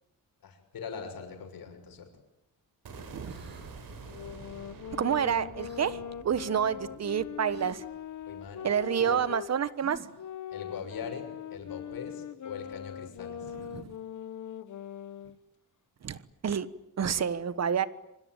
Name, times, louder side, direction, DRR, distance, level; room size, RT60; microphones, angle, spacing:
voice 1, 0.4-2.1 8.3-8.7 9.0-9.2 10.5-13.5, left 6 dB, 85° left, 4 dB, 6.6 m, -41 dB
sound 1, 2.8-8.9, right 3 dB, 80° right, 6.0 m, -48 dB
sound 2, 3.2-3.7 5.6-5.9 7.5-7.8 9.8-10.3, right 3 dB, 30° right, 6.7 m, -52 dB
sound 3, 4.0-9.5 10.1-15.4, left 9 dB, 60° left, 1.2 m, -41 dB
voice 2, 5.0-7.8 8.6-10.0 13.7-13.9 16.0-16.2 16.4-16.7 17.0-17.9, right 8 dB, 50° right, 15 dB, 1.4 m, -28 dB
25.5 x 25.0 x 9.1 m, 0.87 s
wide cardioid pair, 175°, 34 cm